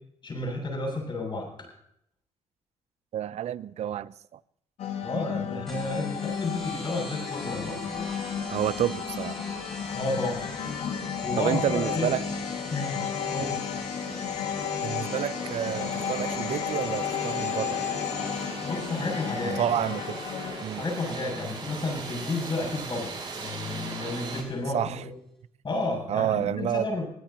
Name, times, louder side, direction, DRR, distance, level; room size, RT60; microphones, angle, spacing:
voice 1, 0.2-1.7 5.0-7.8 8.2-8.4 9.9-10.4 11.2-12.1 12.7-13.1 13.3-13.6 18.6-19.7 20.7-25.1 25.6-27.0, left 2 dB, 40° left, 7.7 m, -31 dB
voice 2, 3.1-4.4 8.5-9.4 11.4-12.3 14.8-17.8 19.4-20.2 20.6-20.8 24.7-25.0 26.1-26.9, right 10 dB, 70° right, 0.6 m, -29 dB
sound 1, 4.8-20.6, left 8 dB, 80° left, 2.1 m, -33 dB
sound 2, 5.7-24.8, equal, 5° left, 7.6 m, -45 dB
sound 3, 8.5-8.6 8.8-24.4, right 4 dB, 40° right, 6.0 m, -41 dB
23.5 x 16.0 x 3.0 m
cardioid pair, 80°, 12 cm